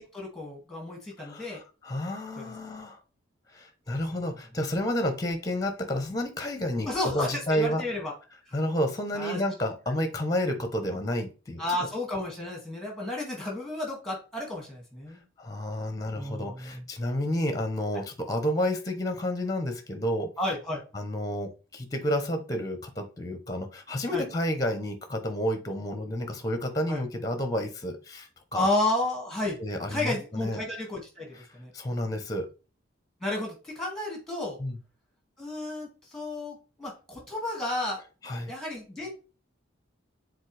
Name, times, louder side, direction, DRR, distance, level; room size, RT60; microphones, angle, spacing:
voice 1, 0.0-1.6 2.4-2.5 3.9-4.0 6.8-8.1 8.5-8.6 9.1-9.4 11.6-15.2 16.1-16.8 20.4-20.8 24.1-24.2 26.9-27.0 28.5-29.6 29.9-31.7 33.2-34.6 35.4-38.0 38.5-39.1, left 1 dB, ahead, -1 dB, 2.0 m, -32 dB
voice 2, 1.2-3.0 3.5-7.8 8.5-11.6 15.4-20.3 20.9-28.7 29.6-30.6 31.7-32.5 34.6-34.8 38.2-38.5, left 1 dB, 20° left, 7 dB, 0.9 m, -30 dB
7.3 x 4.0 x 3.3 m, 0.34 s
head